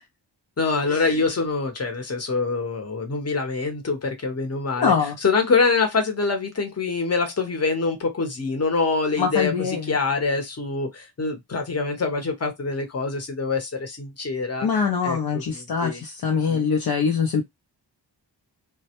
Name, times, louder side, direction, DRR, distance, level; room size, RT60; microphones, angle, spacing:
voice 1, 0.6-4.9 5.2-14.7 15.0-16.0 16.5-16.6, left 4 dB, 35° left, 0.8 m, -25 dB
voice 2, 4.8-5.2 9.2-10.0 14.6-17.4, left 6 dB, 60° left, 0.6 m, -23 dB
2.1 x 2.1 x 2.8 m
wide cardioid pair, 100°, 43 cm